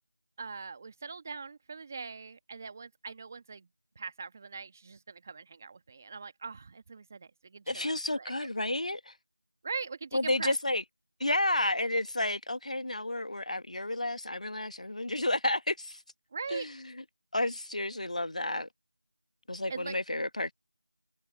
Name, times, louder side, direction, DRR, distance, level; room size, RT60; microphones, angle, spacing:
voice 1, 0.4-3.7 3.9-8.3 9.6-10.5 16.3-16.7 19.7-20.0, right 4 dB, 20° right, 1.4 m, -41 dB
voice 2, 7.7-9.1 10.1-10.8 11.2-16.0 16.5-16.7 17.3-18.7 19.5-20.5, left 1 dB, 70° left, 1.7 m, -31 dB
figure-of-eight pair, 175°, 4 cm